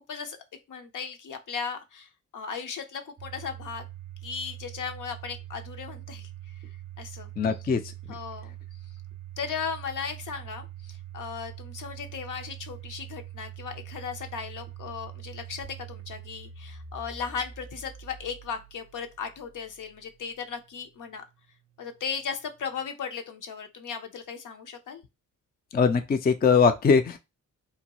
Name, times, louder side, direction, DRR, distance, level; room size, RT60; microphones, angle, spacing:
voice 1, 0.7-3.8 4.2-6.6 7.0-7.3 8.1-8.5 9.4-21.2 21.8-25.0, left 6 dB, 65° left, 0.7 m, -36 dB
Domestic sounds home sounds, 3.2-20.1, right 11 dB, 45° right, 0.6 m, -43 dB
voice 2, 7.4-7.8 25.7-27.2, left 5 dB, 30° left, 0.4 m, -21 dB
2.8 x 2.2 x 2.9 m
supercardioid pair, 55°, 33 cm